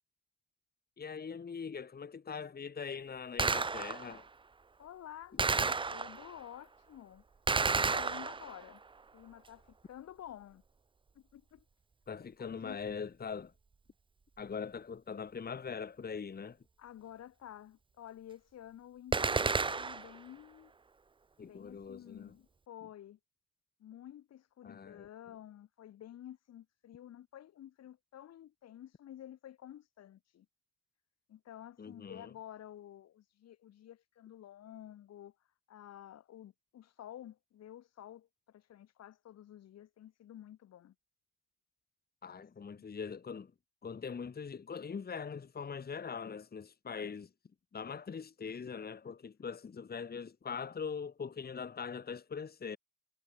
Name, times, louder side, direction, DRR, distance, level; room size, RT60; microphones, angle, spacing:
voice 1, 1.0-4.3 12.1-13.5 14.4-16.6 21.4-22.4 24.6-25.1 31.8-32.3 42.2-43.5 43.8-47.3 47.7-52.8, left 6 dB, 30° left, 1.8 m, -42 dB
Gunshot gunfire, 3.4-4.2 5.4-6.4 7.5-8.7 19.1-20.2, right 4 dB, 15° right, 0.7 m, -31 dB
voice 2, 4.8-7.2 7.6-8.8 9.1-10.6 11.2-11.6 12.2-12.8 16.8-20.7 21.4-23.2 23.8-30.5 31.3-35.3 35.7-40.9 42.3-42.4 42.7-42.8, left 11 dB, 50° left, 2.2 m, -51 dB
figure-of-eight pair, 50°, 33 cm